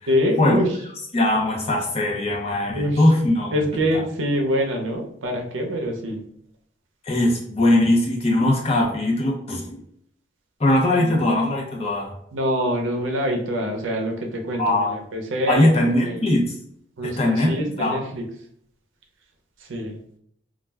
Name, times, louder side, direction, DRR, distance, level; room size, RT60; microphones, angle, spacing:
voice 1, 0.1-0.7 2.7-3.0 3.5-6.2 11.0-11.2 12.3-15.7 16.0-16.2 17.0-18.2 19.6-20.0, equal, 85° right, 3 dB, 0.6 m, -25 dB
voice 2, 1.1-3.6 3.9-4.0 7.0-9.7 10.6-12.1 14.6-14.9 15.5-16.4 17.0-18.0, left 1 dB, 30° left, -1 dB, 0.6 m, -20 dB
2.3 x 2.1 x 3.3 m, 0.69 s
head